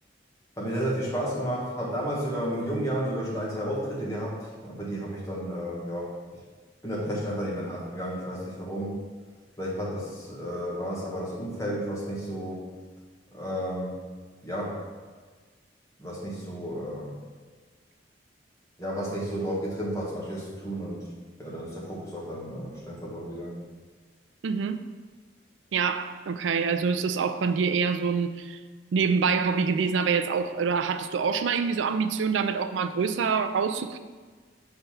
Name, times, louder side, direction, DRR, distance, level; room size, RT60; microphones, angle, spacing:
voice 1, 0.6-6.1 6.8-9.0 9.6-12.7 13.3-14.0 14.4-14.8 16.0-17.1 18.8-21.1 21.4-23.6, equal, 15° left, -5 dB, 1.5 m, -32 dB
voice 2, 24.4-24.8 25.7-28.6 28.9-34.0, right 5 dB, 90° right, 9 dB, 0.4 m, -26 dB
6.7 x 3.4 x 5.8 m, 1.5 s
head